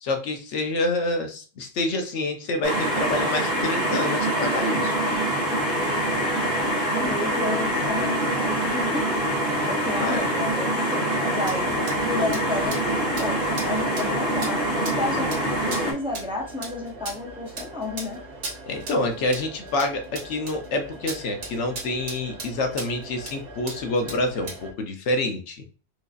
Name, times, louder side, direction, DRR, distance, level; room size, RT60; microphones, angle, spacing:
voice 1, 0.0-5.0 9.9-10.3 18.7-25.6, left 2 dB, 80° left, 5 dB, 1.0 m, -27 dB
sound 1, 2.6-15.9, right 1 dB, 40° right, 1.4 m, -25 dB
voice 2, 6.9-18.2, left 3 dB, 5° right, -1 dB, 0.4 m, -32 dB
sound 2, 11.4-24.7, right 3 dB, 80° right, 1.3 m, -39 dB
4.6 x 2.6 x 2.4 m, 0.37 s
omnidirectional pair, 1.2 m